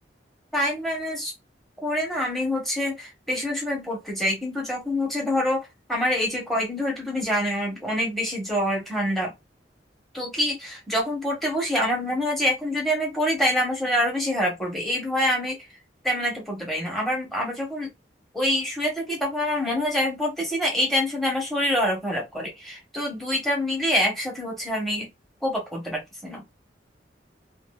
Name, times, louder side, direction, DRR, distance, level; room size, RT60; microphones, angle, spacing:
voice 1, 0.5-1.3 1.8-9.3 10.1-15.6 16.0-17.9 18.3-25.1 25.4-26.4, left 1 dB, ahead, 1.2 m, -26 dB
2.6 x 2.6 x 2.4 m
head